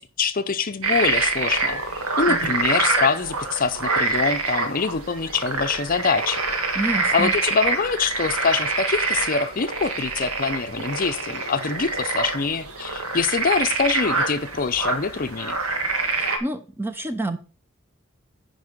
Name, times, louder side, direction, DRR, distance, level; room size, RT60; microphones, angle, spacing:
voice 1, 0.0-1.8 2.2-6.4 7.1-15.6, left 5 dB, 40° left, 11 dB, 0.6 m, -24 dB
sound 1, 0.8-16.4, right 3 dB, 85° right, 1.7 m, -26 dB
voice 2, 6.8-7.3 16.2-17.4, right 2 dB, 10° right, 9 dB, 0.7 m, -28 dB
9.6 x 5.4 x 5.0 m, 0.35 s
head